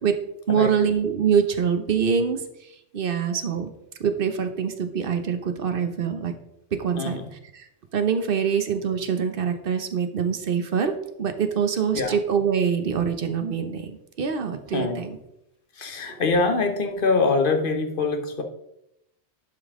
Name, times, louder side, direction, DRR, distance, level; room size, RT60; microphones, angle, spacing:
voice 1, 0.5-2.4 2.9-3.7 4.0-6.3 6.7-7.2 7.5-15.2, right 7 dB, 55° right, 7 dB, 1.0 m, -24 dB
voice 2, 7.0-7.3 11.9-12.2 14.7-15.0 15.7-18.4, left 3 dB, 50° left, 6 dB, 1.2 m, -24 dB
11.0 x 5.4 x 3.6 m, 0.82 s
omnidirectional pair, 1.2 m